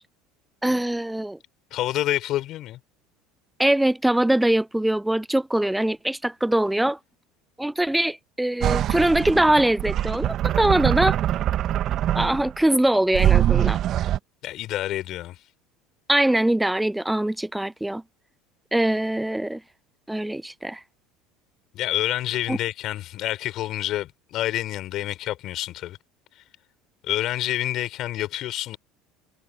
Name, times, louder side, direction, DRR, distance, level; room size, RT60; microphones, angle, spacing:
voice 1, 0.6-1.4 3.6-7.0 7.6-11.2 12.1-13.8 16.1-18.0 18.7-19.6 20.1-20.8 22.5-22.6, right 1 dB, 5° right, 0.6 m, -22 dB
voice 2, 1.7-2.8 14.4-15.4 21.7-26.0 27.0-28.8, left 14 dB, 50° left, 4.4 m, -28 dB
sound 1, 8.6-12.6 13.1-14.2, right 12 dB, 45° right, 0.9 m, -23 dB
figure-of-eight pair, 65°, 0 cm